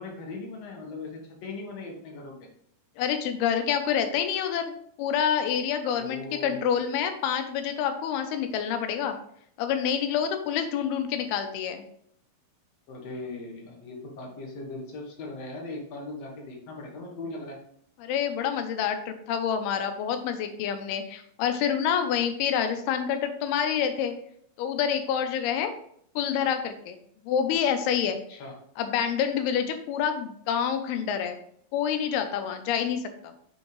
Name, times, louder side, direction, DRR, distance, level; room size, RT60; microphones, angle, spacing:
voice 1, 0.0-2.5 5.9-6.7 12.9-17.6 28.3-28.5, left 2 dB, 60° left, 0 dB, 1.7 m, -39 dB
voice 2, 3.0-4.7 5.0-9.2 9.6-11.8 18.0-24.1 24.6-25.7 26.2-27.0 27.2-28.2 28.8-31.4 31.7-33.0, left 8 dB, 85° left, 7 dB, 2.6 m, -27 dB
6.8 x 5.2 x 3.2 m, 0.66 s
omnidirectional pair, 4.7 m